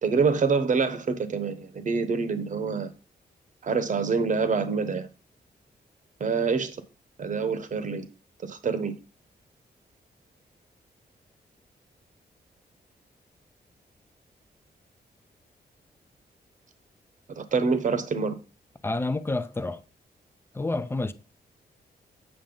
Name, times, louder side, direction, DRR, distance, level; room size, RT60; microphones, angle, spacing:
voice 1, 0.0-2.9 3.6-5.1 6.2-6.8 7.2-8.1 8.4-8.9 17.3-18.4, right 5 dB, 50° right, 1.0 m, -26 dB
voice 2, 18.8-19.8 20.5-21.1, left 2 dB, 15° left, 0.6 m, -28 dB
8.9 x 6.3 x 3.8 m
wide cardioid pair, 165°, 17 cm